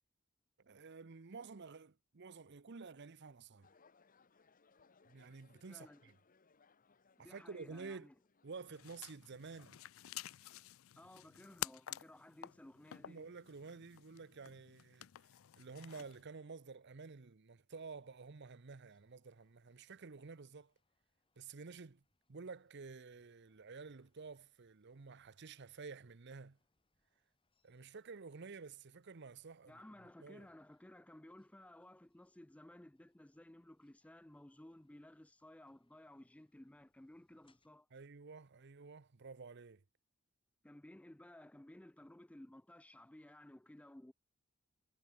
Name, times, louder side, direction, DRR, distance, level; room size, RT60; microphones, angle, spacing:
voice 1, 0.6-3.7 5.1-6.2 7.2-8.1 8.4-9.8 13.1-20.7 21.4-22.0 22.3-26.6 27.6-29.8 30.2-30.5 37.9-39.8, right 4 dB, 60° right, 0.8 m, -51 dB
sound 1, 3.6-8.8, left 4 dB, 45° left, 1.0 m, -70 dB
voice 2, 5.7-6.0 7.2-8.1 11.0-13.3 29.7-37.9 40.6-44.1, left 1 dB, 5° left, 0.4 m, -57 dB
sound 2, 8.7-16.2, left 13 dB, 90° left, 0.5 m, -50 dB
sound 3, 18.7-37.7, left 3 dB, 25° left, 5.4 m, -86 dB
head